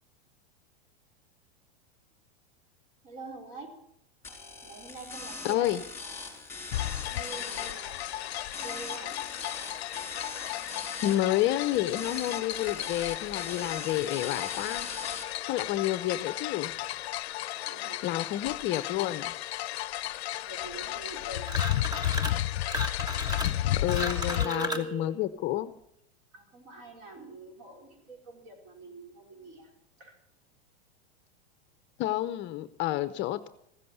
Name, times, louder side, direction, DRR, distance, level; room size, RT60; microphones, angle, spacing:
voice 1, 3.0-3.7 4.6-5.7 6.6-8.0 8.5-9.2 17.7-18.0 20.4-21.8 23.7-25.2 26.3-29.7 30.0-30.2, right 2 dB, 40° right, 2 dB, 4.7 m, -44 dB
sound 1, 4.2-15.2, left 3 dB, 10° left, 5.2 m, -42 dB
voice 2, 5.4-5.8 11.0-14.9 15.5-16.7 18.0-19.3 23.8-25.7 32.0-33.5, left 14 dB, 35° left, 13 dB, 0.7 m, -29 dB
sound 2, 6.7-24.5, left 14 dB, 85° left, 0.6 m, -33 dB
sound 3, 21.4-22.4 22.7-24.9, equal, 10° right, 1.4 m, -35 dB
15.0 x 7.6 x 9.4 m, 0.73 s
supercardioid pair, 125°, 31 cm